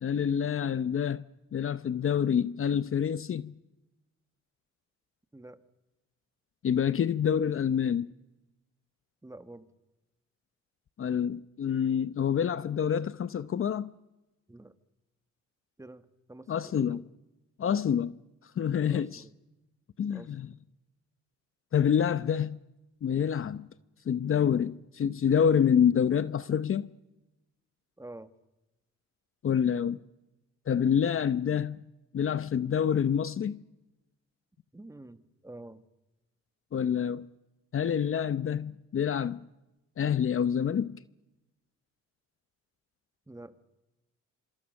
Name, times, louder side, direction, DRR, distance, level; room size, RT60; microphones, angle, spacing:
voice 1, 0.0-1.2 1.5-3.6 6.6-8.1 11.0-13.9 16.5-17.0 17.6-18.1 18.6-19.2 20.0-20.5 21.7-22.6 23.0-23.7 24.1-26.9 29.4-30.0 30.7-31.9 32.1-33.6 36.7-37.3 37.7-39.4 40.0-41.0, left 8 dB, 45° left, 0.8 m, -27 dB
voice 2, 9.2-9.7 14.5-14.7 15.8-17.0 18.9-19.3 20.1-20.3 28.0-28.3 34.7-35.8 43.3-43.5, right 2 dB, 10° right, 1.6 m, -47 dB
26.0 x 26.0 x 6.5 m
cardioid pair, 90°, 30 cm